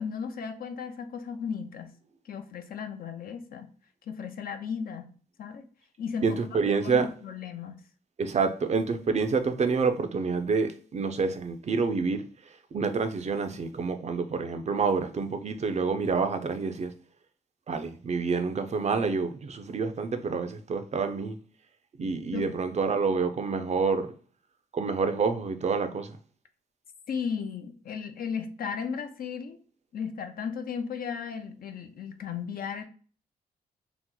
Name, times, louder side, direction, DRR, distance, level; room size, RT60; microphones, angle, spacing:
voice 1, 0.0-1.9 2.3-3.7 4.1-5.1 5.4-5.6 6.0-6.4 6.8-7.7 22.3-22.5 27.1-29.6 29.9-32.8, left 6 dB, 60° left, 0.5 m, -35 dB
voice 2, 6.2-7.1 8.2-12.2 12.7-16.9 17.7-21.4 22.0-24.1 24.7-26.1, right 4 dB, 45° right, 0.5 m, -28 dB
2.9 x 2.0 x 3.6 m
cardioid pair, 60°, 17 cm